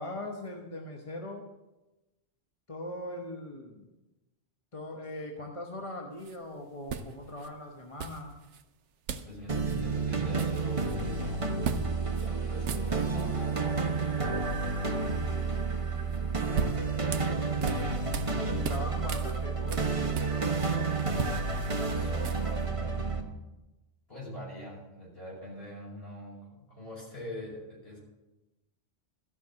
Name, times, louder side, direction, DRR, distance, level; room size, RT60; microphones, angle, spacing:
voice 1, 0.0-1.5 2.7-3.9 4.7-8.4 17.2-21.0, left 1 dB, 30° left, 1 dB, 1.1 m, -41 dB
sound 1, 6.2-6.4 6.9-7.5 8.0-8.6 9.1-9.3 9.6-9.8 10.1-11.0 11.6-11.9 12.1-12.3 12.6-13.3 16.1-18.3 18.6-20.7 21.0-22.6, right 6 dB, 80° right, 1.0 m, -37 dB
voice 2, 9.3-11.5 12.0-14.5 21.9-23.3 24.1-28.0, left 1 dB, 55° left, -4 dB, 5.9 m, -43 dB
sound 2, 9.5-23.2, right 4 dB, 30° right, 1.2 m, -30 dB
13.5 x 5.9 x 7.6 m, 1.0 s
omnidirectional pair, 1.2 m